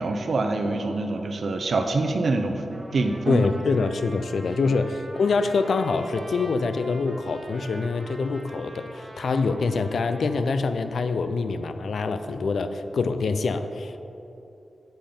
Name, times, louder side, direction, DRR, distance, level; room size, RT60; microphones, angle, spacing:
voice 1, 0.0-3.5, right 3 dB, 60° right, 5 dB, 0.5 m, -25 dB
Trumpet, 2.7-10.4, right 1 dB, 30° right, 1.0 m, -44 dB
voice 2, 3.3-14.0, left 4 dB, 75° left, 10 dB, 0.4 m, -25 dB
7.8 x 5.2 x 5.1 m, 2.9 s
wide cardioid pair, 140°, 0 cm